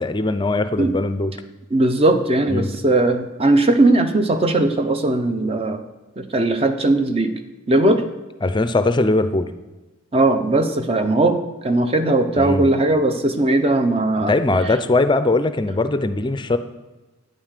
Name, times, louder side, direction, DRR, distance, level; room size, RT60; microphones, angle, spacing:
voice 1, 0.0-1.3 2.5-2.7 8.4-9.5 12.4-12.7 14.3-16.6, left 2 dB, 20° left, 11 dB, 0.5 m, -20 dB
voice 2, 1.7-5.8 6.2-7.3 7.7-8.0 10.1-11.4 11.6-14.3, right 2 dB, 30° right, 8 dB, 0.8 m, -18 dB
9.5 x 9.5 x 6.7 m, 1.1 s
head